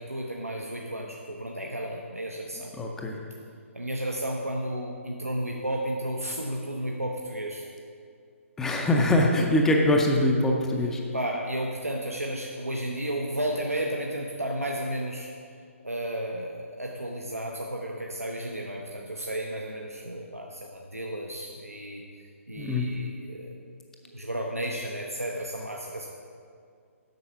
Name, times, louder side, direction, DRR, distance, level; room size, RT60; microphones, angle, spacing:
voice 1, 0.0-2.7 3.7-7.7 11.1-15.3 15.8-22.0 22.5-23.5 24.1-26.1, right 1 dB, 90° right, -1 dB, 0.8 m, -33 dB
voice 2, 2.8-3.2 8.6-11.0 22.6-22.9, left 1 dB, 5° left, 1 dB, 0.5 m, -23 dB
7.9 x 5.5 x 5.7 m, 2.3 s
figure-of-eight pair, 135°, 8 cm